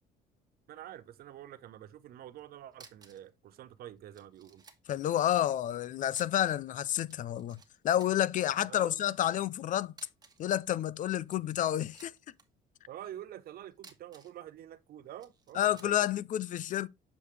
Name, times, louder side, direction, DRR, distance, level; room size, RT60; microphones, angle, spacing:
voice 1, 0.7-4.6 8.7-9.0 12.9-16.0, right 12 dB, 60° right, 0.7 m, -47 dB
sound 1, 2.7-3.3 3.6-3.7 4.1-5.1 6.1-6.7 6.9-7.7 8.0-8.5 9.9-10.5 11.1-12.4 13.7-14.4 15.2-16.0, right 4 dB, 25° right, 1.3 m, -57 dB
voice 2, 4.9-9.9 10.4-12.1 15.5-16.9, left 12 dB, 50° left, 0.4 m, -30 dB
7.1 x 4.9 x 3.2 m
cardioid pair, 110°, 17 cm